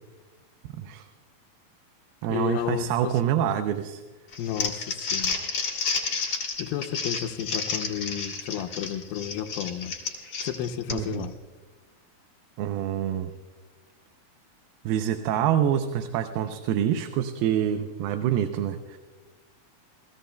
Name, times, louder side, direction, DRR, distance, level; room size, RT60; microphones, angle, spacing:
voice 1, 0.6-1.1 2.2-4.0 10.9-11.2 12.6-13.3 14.9-19.0, right 10 dB, 85° right, 7 dB, 2.6 m, -26 dB
voice 2, 2.3-3.2 4.4-5.4 6.6-10.0 10.4-11.4, left 10 dB, 80° left, 6 dB, 2.6 m, -32 dB
Crumpling crinkling, 4.3-11.2, left 5 dB, 40° left, 3.0 m, -31 dB
29.0 x 18.5 x 2.2 m, 1.3 s
omnidirectional pair, 4.3 m